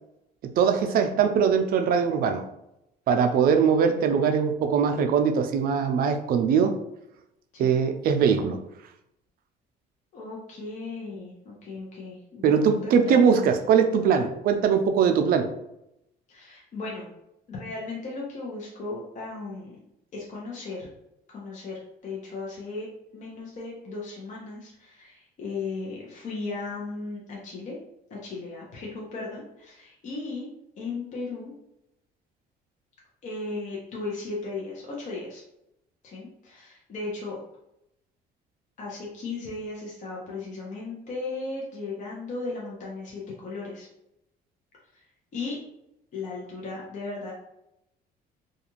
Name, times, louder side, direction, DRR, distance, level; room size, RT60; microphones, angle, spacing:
voice 1, 0.6-2.4 3.1-6.7 7.6-8.6 12.4-15.5, right 6 dB, 60° right, 6 dB, 0.4 m, -21 dB
voice 2, 10.1-13.5 16.3-17.0 17.5-19.8 20.1-20.9 21.3-22.9 23.1-27.8 28.1-30.5 30.8-31.5 33.2-35.4 36.0-37.4 38.8-43.9 44.9-45.0 45.3-45.6 46.1-47.3, left 3 dB, 45° left, -4 dB, 0.7 m, -36 dB
2.4 x 2.3 x 3.0 m, 0.84 s
cardioid pair, 110°, 17 cm